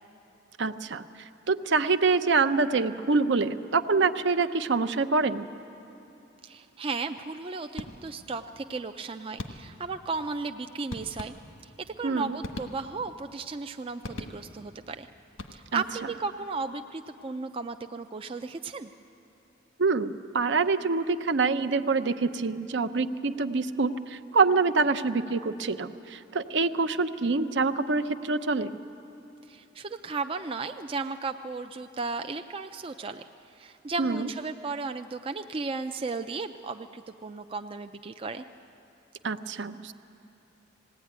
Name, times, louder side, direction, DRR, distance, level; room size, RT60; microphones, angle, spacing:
voice 1, 0.6-1.0 1.5-5.4 12.0-12.4 15.7-15.8 19.8-28.7 34.0-34.3 39.2-39.9, right 4 dB, 65° right, 9 dB, 0.7 m, -26 dB
voice 2, 6.4-11.3 11.6-11.7 12.0-15.1 15.5-18.9 29.5-33.2 33.5-38.4, right 4 dB, 30° right, 6 dB, 0.4 m, -35 dB
sound 1, 7.8-8.3 9.4-9.9 10.9-11.8 12.4-13.2 14.0-14.7 15.3-15.9, left 2 dB, 90° left, 1.4 m, -41 dB
20.0 x 16.5 x 9.5 m, 3.0 s
head